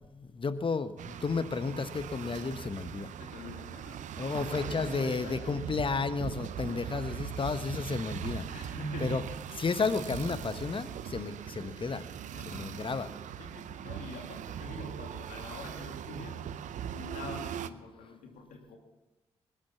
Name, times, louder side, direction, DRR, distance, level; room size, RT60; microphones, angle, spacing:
voice 1, 0.1-3.1 4.2-8.5 9.0-9.2 9.6-12.0 12.5-13.1, left 4 dB, 40° left, 13 dB, 1.0 m, -32 dB
sound 1, 1.0-17.7, right 9 dB, 70° right, 0.6 m, -40 dB
voice 2, 3.2-5.6 8.5-9.5 12.3-12.8 13.4-16.5 16.9-18.8, left 2 dB, 80° left, 3 dB, 2.6 m, -44 dB
20.0 x 8.8 x 7.2 m, 1.0 s
hypercardioid pair, 45°, 13 cm